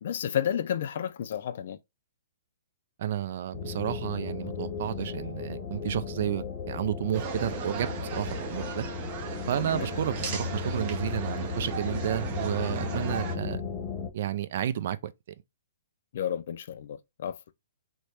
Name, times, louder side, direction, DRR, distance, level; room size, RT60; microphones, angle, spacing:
voice 1, 0.0-1.8 9.6-10.1 16.1-17.4, left 9 dB, 60° left, 0.4 m, -32 dB
voice 2, 3.0-8.9 9.5-13.6 14.1-15.1, right 11 dB, 55° right, 0.4 m, -31 dB
sound 1, 3.5-14.1, left 5 dB, 30° left, 0.8 m, -35 dB
sound 2, 7.1-13.3, right 8 dB, 40° right, 0.8 m, -37 dB
3.1 x 2.1 x 4.2 m
hypercardioid pair, 135°, 0 cm